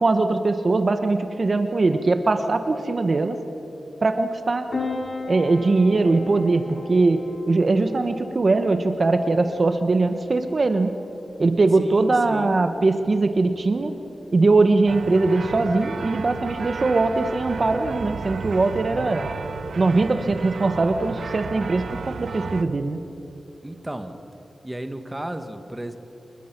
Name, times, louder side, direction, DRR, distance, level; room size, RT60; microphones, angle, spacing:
voice 1, 0.0-3.4 4.0-4.7 5.3-10.9 11.4-13.9 14.3-19.2 19.8-23.0, right 3 dB, 45° right, 7 dB, 1.1 m, -21 dB
Piano, 4.7-19.7, left 3 dB, 45° left, 4.6 m, -40 dB
voice 2, 11.8-12.6 23.6-24.2 24.6-26.0, right 1 dB, 10° right, 7 dB, 1.3 m, -34 dB
sound 1, 14.9-22.6, right 5 dB, 80° right, 1.0 m, -33 dB
29.5 x 21.0 x 6.0 m, 3.0 s
wide cardioid pair, 125°, 0 cm